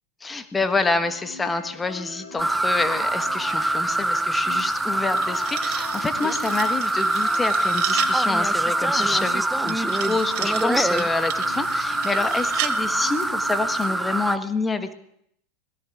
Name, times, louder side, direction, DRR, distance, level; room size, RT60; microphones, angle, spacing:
voice 1, 0.2-14.9, left 3 dB, 15° left, 9 dB, 1.2 m, -27 dB
sound 1, 0.6-14.3, left 4 dB, 55° left, 3.2 m, -42 dB
sound 2, 2.4-14.4, right 2 dB, 5° right, 0.6 m, -24 dB
sound 3, 4.9-8.2 9.7-12.8, right 15 dB, 55° right, 0.8 m, -34 dB
25.5 x 18.0 x 2.4 m, 0.71 s
hypercardioid pair, 95°, 0 cm